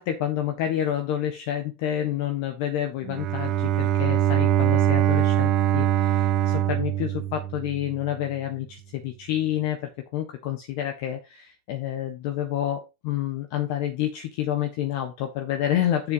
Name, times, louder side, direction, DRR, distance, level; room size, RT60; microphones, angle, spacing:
voice 1, 0.0-16.1, left 11 dB, 60° left, 1.4 m, -29 dB
Bowed string instrument, 3.0-8.1, right 11 dB, 40° right, 0.7 m, -23 dB
7.2 x 4.4 x 5.6 m
hypercardioid pair, 105°, 0 cm